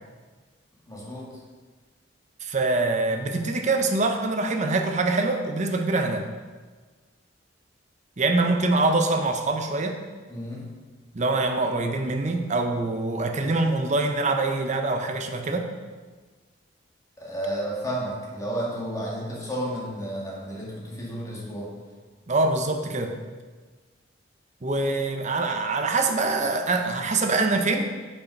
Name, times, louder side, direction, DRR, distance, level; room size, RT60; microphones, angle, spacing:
voice 1, 0.9-1.3 10.3-10.6 17.2-21.7, right 1 dB, 20° left, -5 dB, 2.0 m, -32 dB
voice 2, 2.4-6.3 8.2-10.0 11.1-15.7 22.3-23.2 24.6-27.9, right 2 dB, 40° right, 5 dB, 0.8 m, -24 dB
7.3 x 5.6 x 5.3 m, 1.4 s
head